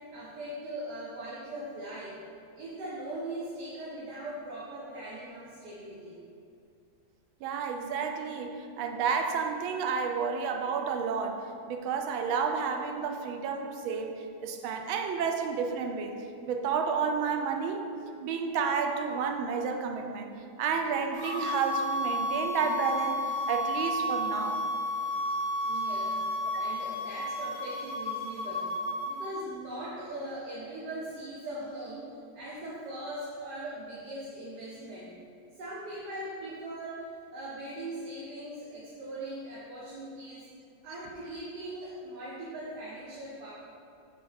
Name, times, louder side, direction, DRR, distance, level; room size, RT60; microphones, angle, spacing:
voice 1, 0.0-2.2 2.6-6.2 25.6-28.7 29.0-35.2 35.5-40.5 40.8-43.5, right 1 dB, 60° right, -6 dB, 1.3 m, -40 dB
voice 2, 7.4-17.9 18.2-20.3 20.6-24.6, right 6 dB, 85° right, 5 dB, 1.5 m, -31 dB
sound 1, 21.1-29.3, left 1 dB, 60° left, 2.2 m, -32 dB
6.4 x 3.8 x 5.6 m, 2.5 s
omnidirectional pair, 2.2 m